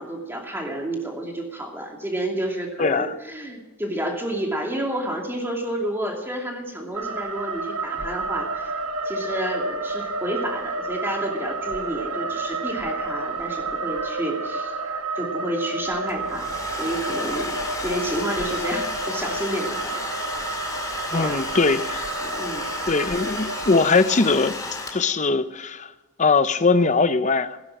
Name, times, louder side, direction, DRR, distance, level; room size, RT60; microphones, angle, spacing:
voice 1, 0.0-16.5 16.8-17.6 17.8-20.0 21.1-21.4 22.2-22.7, right 1 dB, 10° right, 2.7 m, -30 dB
voice 2, 2.8-3.2 21.1-22.0 22.9-24.5 24.9-25.9 26.2-27.6, left 4 dB, 35° left, 0.7 m, -21 dB
sound 1, 6.9-23.9, right 3 dB, 85° right, 1.4 m, -30 dB
Domestic sounds home sounds, 16.1-25.3, left 2 dB, 15° left, 2.0 m, -33 dB
17.0 x 10.0 x 6.2 m
head